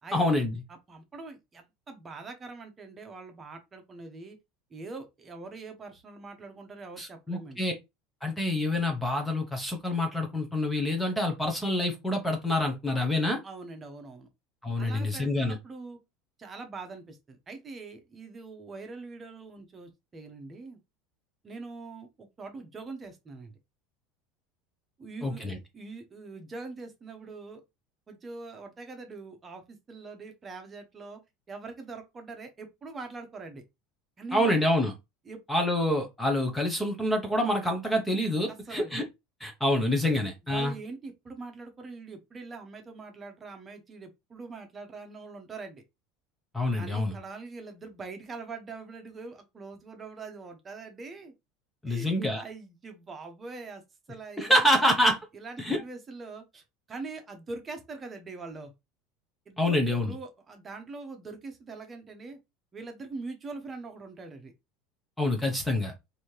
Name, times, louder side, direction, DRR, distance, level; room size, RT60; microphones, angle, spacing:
voice 1, 0.1-0.6 7.0-7.7 8.2-13.4 14.6-15.6 25.2-25.6 34.3-34.9 35.5-39.0 39.4-40.7 46.5-47.1 51.8-52.4 54.4-55.2 55.6-55.8 59.6-60.1 65.2-65.9, left 1 dB, 5° left, 0.8 m, -27 dB
voice 2, 0.9-4.4 4.7-7.6 13.4-14.3 14.8-16.0 16.4-20.8 21.4-23.5 25.0-25.4 25.7-27.6 28.1-31.2 31.5-33.6 34.2-34.5 35.2-35.4 38.5-38.9 40.5-45.8 46.7-51.3 51.9-53.8 54.1-54.7 55.3-58.7 59.5-62.4 62.7-64.5, right 3 dB, 20° right, 0.9 m, -43 dB
4.1 x 2.8 x 3.2 m
supercardioid pair, 140°, 0 cm